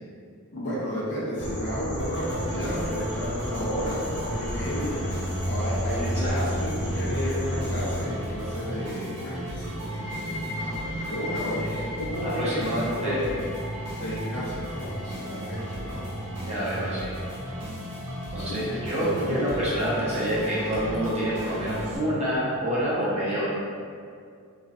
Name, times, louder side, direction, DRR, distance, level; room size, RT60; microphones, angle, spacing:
voice 1, 0.5-13.4 14.0-16.1 18.4-19.4, equal, 50° left, -7 dB, 0.6 m, -32 dB
sound 1, 1.4-8.0, equal, 85° left, 0.7 m, -31 dB
sound 2, 2.0-22.0, right 1 dB, 85° right, 0.7 m, -35 dB
voice 2, 6.0-6.3 11.6-11.8 12.2-13.3 16.4-17.2 18.3-23.4, equal, 30° right, -8 dB, 0.6 m, -28 dB
sound 3, 9.8-17.3, left 2 dB, 15° left, 0.8 m, -40 dB
2.3 x 2.2 x 2.5 m, 2.2 s
head